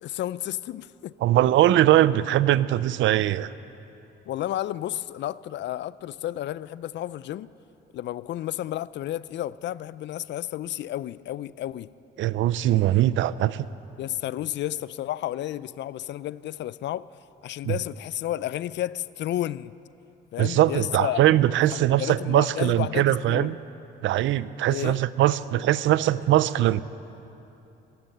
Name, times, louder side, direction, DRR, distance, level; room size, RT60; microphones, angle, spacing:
voice 1, 0.0-1.2 4.3-7.5 7.9-11.9 14.0-17.1 17.4-19.7 20.3-21.2 21.7-23.5 24.7-25.0, left 13 dB, 65° left, 0.4 m, -32 dB
voice 2, 1.2-3.5 12.2-13.6 17.6-17.7 20.4-23.6 24.0-26.8, right 13 dB, 75° right, 0.5 m, -21 dB
15.0 x 12.0 x 7.7 m
cardioid pair, 90°, 20 cm